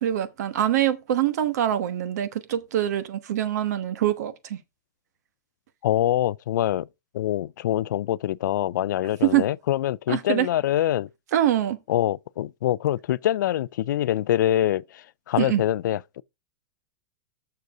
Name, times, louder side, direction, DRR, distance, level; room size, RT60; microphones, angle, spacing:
voice 1, 0.0-4.6 9.2-9.4 10.1-10.5 11.3-11.8 15.4-15.6, right 12 dB, 65° right, 1.1 m, -24 dB
voice 2, 5.8-6.9 7.1-11.1 11.9-16.2, left 12 dB, 85° left, 0.4 m, -25 dB
6.7 x 6.5 x 4.8 m
supercardioid pair, 170°, 10 cm